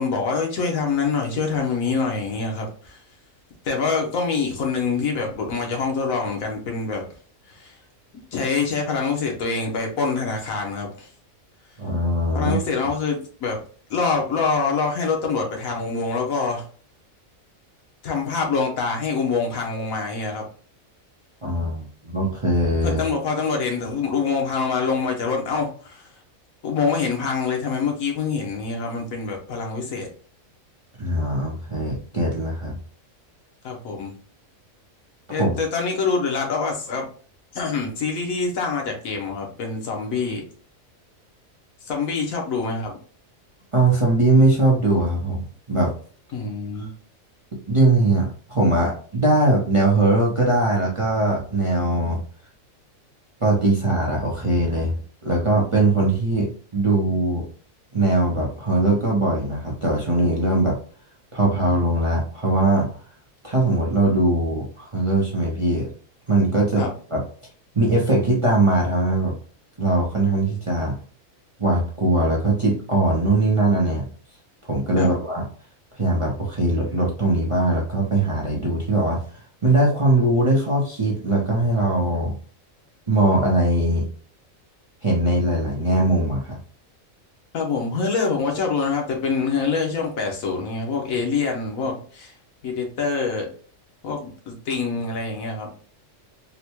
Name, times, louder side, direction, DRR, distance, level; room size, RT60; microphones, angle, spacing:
voice 1, 0.0-3.0 3.6-7.0 7.5-7.8 8.3-11.1 12.3-13.6 13.9-16.7 18.0-20.4 22.8-26.1 26.6-30.1 33.6-34.1 35.3-37.1 37.5-40.4 41.8-42.9 46.3-46.9 66.8-66.9 75.0-75.1 87.5-92.3 92.6-93.5 94.0-95.7, left 4 dB, 80° left, 2 dB, 1.3 m, -25 dB
voice 2, 11.8-12.6 21.4-21.9 22.1-23.0 31.0-32.8 35.3-35.5 43.7-45.9 47.7-52.2 53.4-55.0 55.2-57.4 57.9-60.8 61.3-62.9 63.4-65.9 66.3-67.2 67.7-69.3 69.8-71.0 71.6-74.1 74.6-75.4 76.0-79.2 79.6-82.3 83.1-84.0 85.0-86.6, right 2 dB, 30° right, -3 dB, 0.6 m, -21 dB
3.9 x 2.2 x 2.9 m, 0.44 s
omnidirectional pair, 1.4 m